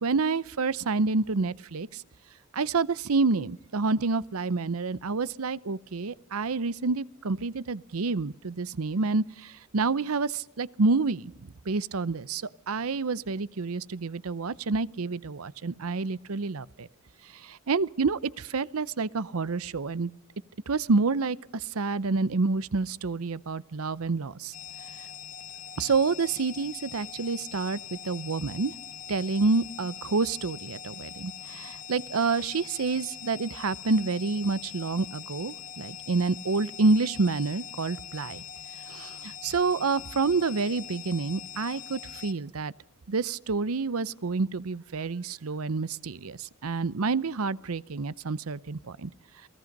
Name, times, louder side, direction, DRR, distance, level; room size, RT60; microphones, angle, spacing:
voice 1, 0.0-2.0 2.5-16.9 17.3-20.1 20.7-24.5 25.8-27.8 28.0-28.7 29.1-38.4 38.9-42.7 43.1-49.1, right 4 dB, 80° right, 0.7 m, -28 dB
sound 1, 24.5-42.3, left 9 dB, 40° left, 1.4 m, -43 dB
28.5 x 19.0 x 5.3 m
head